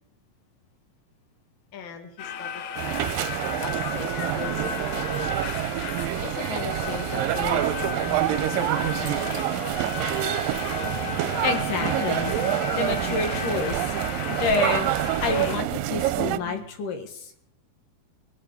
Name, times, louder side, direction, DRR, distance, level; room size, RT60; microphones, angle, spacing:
voice 1, 1.7-3.2 3.6-5.3 6.2-9.6, left 4 dB, 45° left, 6 dB, 1.7 m, -38 dB
sound 1, 2.2-15.6, left 8 dB, 80° left, 2.8 m, -34 dB
sound 2, 2.8-16.4, right 14 dB, 75° right, 2.2 m, -27 dB
sound 3, 10.6-16.6, left 2 dB, 30° left, 0.5 m, -44 dB
voice 2, 11.4-12.4 12.7-14.0 14.3-14.9 15.2-17.3, left 4 dB, 65° left, 5 dB, 3.3 m, -28 dB
22.0 x 8.1 x 6.8 m, 0.71 s
omnidirectional pair, 4.4 m